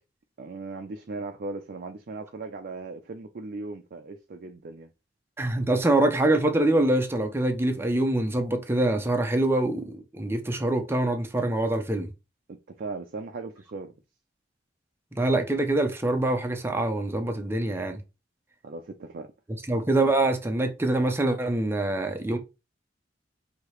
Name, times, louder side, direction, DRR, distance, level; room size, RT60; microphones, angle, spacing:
voice 1, 0.4-4.9 12.5-13.9 18.6-19.3, right 3 dB, 50° right, 0.4 m, -38 dB
voice 2, 5.4-12.1 15.1-18.0 19.7-22.4, right 2 dB, 15° right, 0.6 m, -25 dB
4.7 x 2.8 x 3.1 m
head